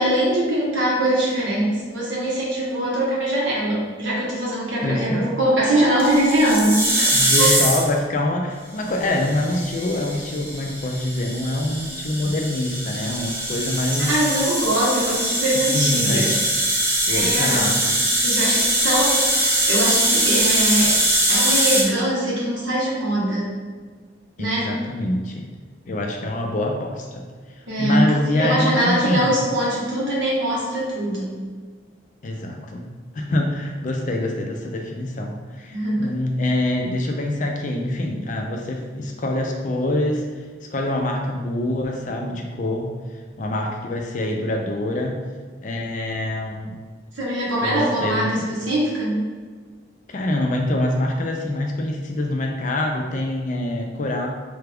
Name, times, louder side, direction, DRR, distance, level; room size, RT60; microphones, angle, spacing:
voice 1, 0.0-7.7 14.1-16.3 17.1-17.7 18.2-21.0 21.3-23.5 24.4-24.7 27.7-31.3 35.7-36.1 47.1-49.2, right 1 dB, 80° right, -5 dB, 1.1 m, -22 dB
voice 2, 4.8-5.3 7.1-14.1 15.7-16.5 17.1-18.0 24.4-25.4 25.9-27.2 27.8-29.3 32.2-32.9 33.1-40.2 40.7-42.9 43.4-45.2 45.6-46.8 47.6-48.4 50.1-54.3, left 1 dB, 40° left, 2 dB, 0.4 m, -25 dB
sound 1, 6.0-8.0 9.0-21.8, right 1 dB, 15° right, 0.5 m, -22 dB
3.3 x 2.3 x 3.4 m, 1.5 s
head